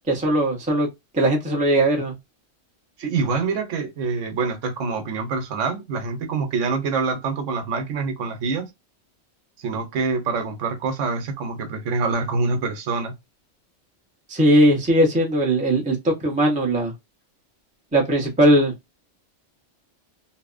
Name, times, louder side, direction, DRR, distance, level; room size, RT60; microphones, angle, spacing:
voice 1, 0.1-0.9 1.2-2.1 14.3-16.9 17.9-18.7, right 1 dB, 10° right, 0.5 m, -19 dB
voice 2, 3.0-8.7 9.6-13.1, right 4 dB, 85° right, 1.1 m, -25 dB
2.8 x 2.1 x 2.3 m
omnidirectional pair, 1.2 m